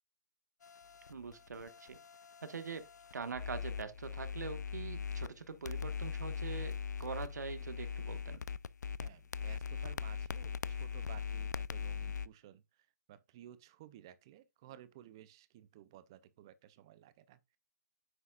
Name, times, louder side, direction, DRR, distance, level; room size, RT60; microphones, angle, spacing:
sound 1, 0.6-5.3 5.6-12.3, left 6 dB, 80° left, 0.4 m, -41 dB
voice 1, 1.1-2.0 2.4-8.4, right 5 dB, 80° right, 1.3 m, -43 dB
voice 2, 9.0-17.6, right 12 dB, 15° right, 0.4 m, -56 dB
9.5 x 6.1 x 2.3 m
hypercardioid pair, 175°, 9 cm